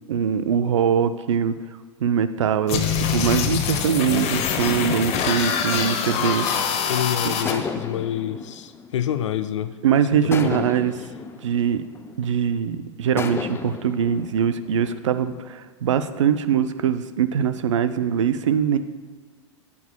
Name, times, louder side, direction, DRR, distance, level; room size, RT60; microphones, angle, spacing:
voice 1, 0.1-1.5 2.0-6.5 7.2-7.4 9.8-10.9 11.4-11.8 12.2-18.8, right 8 dB, 75° right, 12 dB, 0.5 m, -22 dB
sound 1, 2.7-7.5, left 7 dB, 40° left, 0.8 m, -24 dB
sound 2, 6.6-6.9 7.5-9.7 10.3-12.6 13.2-15.4, left 5 dB, 15° left, 0.4 m, -34 dB
voice 2, 6.9-9.8 10.1-10.7, left 10 dB, 75° left, 11 dB, 0.5 m, -27 dB
9.0 x 8.3 x 2.2 m, 1.5 s
hypercardioid pair, 95°, 16 cm